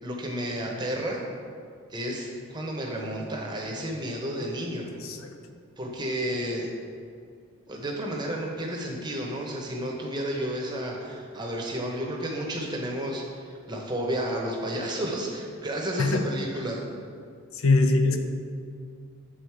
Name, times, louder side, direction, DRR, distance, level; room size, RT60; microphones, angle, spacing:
voice 1, 0.0-1.2 1.9-4.9 5.8-6.7 7.7-16.8, right 1 dB, 20° right, -1 dB, 0.8 m, -31 dB
voice 2, 17.5-18.2, left 3 dB, 70° left, 6 dB, 0.5 m, -22 dB
8.1 x 3.9 x 4.6 m, 2.3 s
head